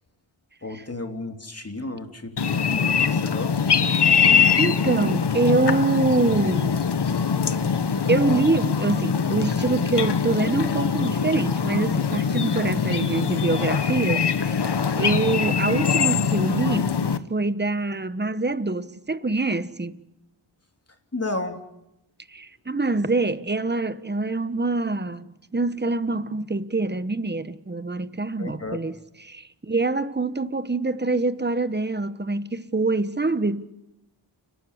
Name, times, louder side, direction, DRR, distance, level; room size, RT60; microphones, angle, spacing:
voice 1, 0.6-3.6 21.1-21.6 28.4-28.8, left 2 dB, 30° left, 3.3 m, -33 dB
sound 1, 2.4-17.2, left 6 dB, 55° left, 1.3 m, -23 dB
voice 2, 4.2-6.8 8.1-20.0 22.3-33.6, right 3 dB, 20° right, 1.2 m, -25 dB
29.5 x 12.5 x 9.7 m
cardioid pair, 60°, 48 cm